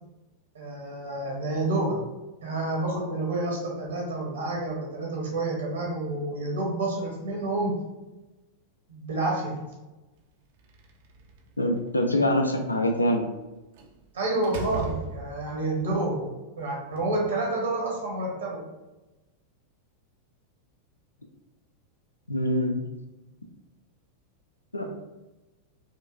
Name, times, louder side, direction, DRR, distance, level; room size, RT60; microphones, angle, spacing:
voice 1, 0.5-2.0 2.4-7.8 8.9-9.6 14.1-16.3 16.6-18.6 24.8-24.9, right 2 dB, 70° right, -2 dB, 1.2 m, -29 dB
Slam, 10.6-11.6 13.8-14.0 14.4-15.7, right 4 dB, 55° right, 0.4 m, -37 dB
voice 2, 11.6-13.3 22.3-22.8 24.7-24.8, left 1 dB, 80° left, 4 dB, 0.4 m, -24 dB
4.4 x 2.5 x 2.4 m, 1.1 s
figure-of-eight pair, 90°, 0 cm